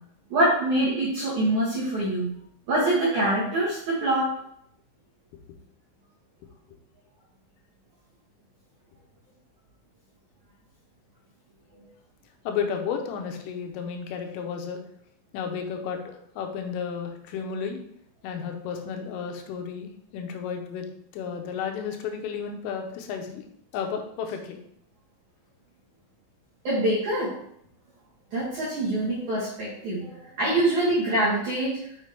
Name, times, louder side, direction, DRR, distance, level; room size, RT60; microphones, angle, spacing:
voice 1, 0.3-2.3 2.7-4.4 26.6-27.4 28.3-31.8, right 1 dB, 70° right, -7 dB, 1.8 m, -25 dB
voice 2, 12.5-14.8 15.3-17.8 18.2-20.9 21.1-23.4 23.7-24.6, left 6 dB, 85° left, 4 dB, 3.4 m, -32 dB
6.6 x 6.3 x 3.3 m, 0.70 s
omnidirectional pair, 5.8 m